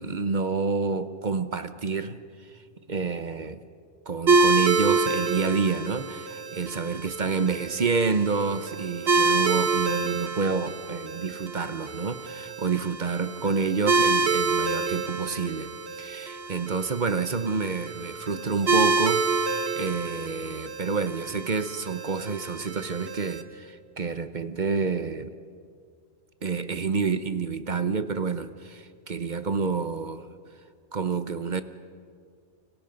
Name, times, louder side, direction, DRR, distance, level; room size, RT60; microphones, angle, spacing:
voice 1, 0.0-2.6 2.9-3.6 4.1-15.7 16.0-25.3 26.4-30.3 30.9-31.6, right 4 dB, 45° right, 11 dB, 1.0 m, -28 dB
sound 1, 4.3-23.4, right 3 dB, 60° right, 1.5 m, -27 dB
30.0 x 26.5 x 5.3 m, 2.1 s
omnidirectional pair, 1.2 m